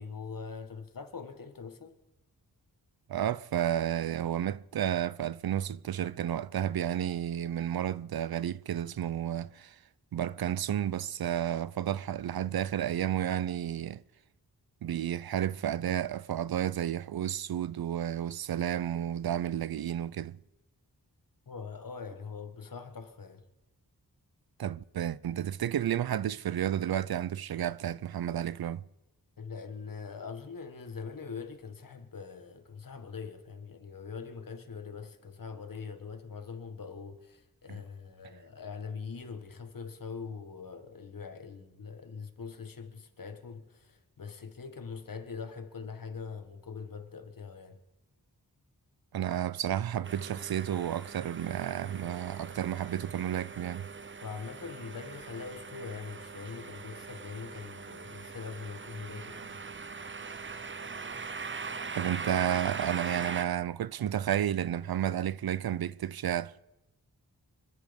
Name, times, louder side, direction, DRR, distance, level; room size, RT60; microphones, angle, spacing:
voice 1, 0.0-2.0 21.5-23.5 29.4-47.8 54.2-59.6, left 5 dB, 60° left, 1.7 m, -43 dB
voice 2, 3.1-9.8 10.1-14.0 14.8-20.4 24.6-28.8 37.7-37.8 49.1-53.9 61.9-66.6, right 10 dB, 75° right, 0.5 m, -31 dB
sound 1, 50.0-63.4, right 4 dB, 30° right, 0.7 m, -41 dB
26.0 x 10.5 x 5.3 m
wide cardioid pair, 85°, 37 cm